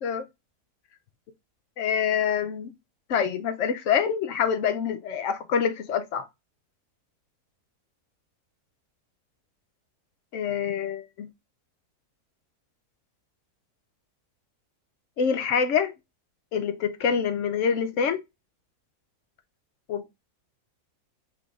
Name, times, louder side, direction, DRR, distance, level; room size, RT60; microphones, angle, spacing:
voice 1, 1.8-2.7 3.1-6.3 10.3-11.3 15.2-15.9 16.5-18.2 19.9-20.1, left 7 dB, 65° left, 0.8 m, -26 dB
5.8 x 3.3 x 2.4 m
omnidirectional pair, 1.7 m